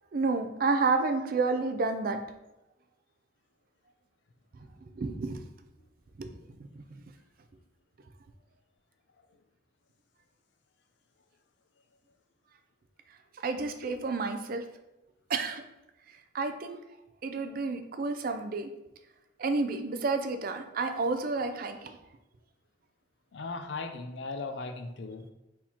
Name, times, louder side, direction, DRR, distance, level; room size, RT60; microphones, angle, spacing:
voice 1, 0.1-2.2 5.0-5.4 6.2-6.3 13.4-14.6 15.3-15.6 16.3-16.8 17.2-18.7 19.4-21.9, right 3 dB, 50° right, 7 dB, 0.4 m, -30 dB
voice 2, 23.3-25.3, left 3 dB, 70° left, 7 dB, 0.5 m, -37 dB
4.5 x 3.6 x 2.8 m, 0.97 s
head